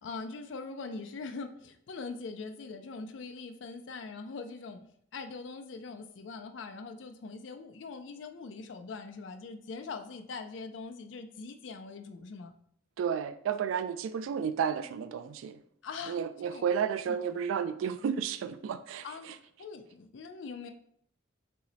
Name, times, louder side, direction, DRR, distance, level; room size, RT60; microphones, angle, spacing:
voice 1, 0.0-4.8 5.1-12.5 15.8-16.6 17.1-17.2 19.0-20.7, left 4 dB, 70° left, 0.4 m, -42 dB
voice 2, 13.0-15.6 16.1-19.4, right 7 dB, 85° right, 0.3 m, -32 dB
5.5 x 2.1 x 3.9 m
head